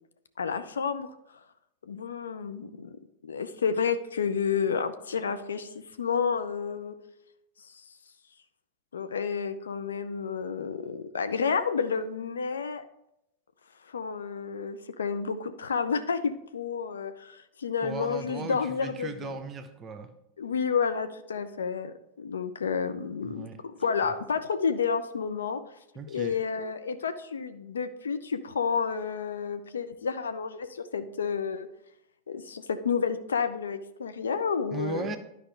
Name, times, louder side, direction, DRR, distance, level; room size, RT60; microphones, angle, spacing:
voice 1, 0.4-1.1 1.9-2.9 3.2-5.7 6.0-6.9 8.9-12.8 13.9-19.4 20.4-25.6 26.1-31.7 32.3-35.2, left 6 dB, 70° left, 0.5 m, -30 dB
voice 2, 17.8-20.1 23.2-23.6 25.9-26.4 34.7-35.2, right 4 dB, 25° right, 0.8 m, -37 dB
11.5 x 4.9 x 3.3 m
figure-of-eight pair, 90°, 0 cm